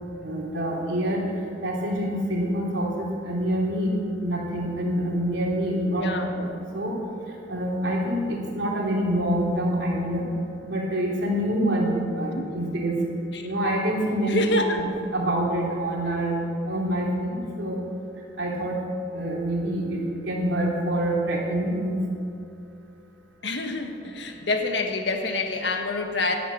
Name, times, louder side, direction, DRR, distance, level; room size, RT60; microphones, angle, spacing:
voice 1, 0.2-1.2 1.6-3.9 4.2-7.0 7.5-10.2 10.7-13.0 13.4-14.6 15.1-16.3 16.7-17.8 18.4-18.8 19.1-22.0, right 1 dB, 80° right, -3 dB, 3.2 m, -26 dB
voice 2, 5.9-6.3 12.3-12.4 13.3-13.4 14.3-14.8 23.4-26.3, left 3 dB, 70° left, 5 dB, 1.5 m, -27 dB
11.5 x 10.0 x 8.5 m, 2.6 s
head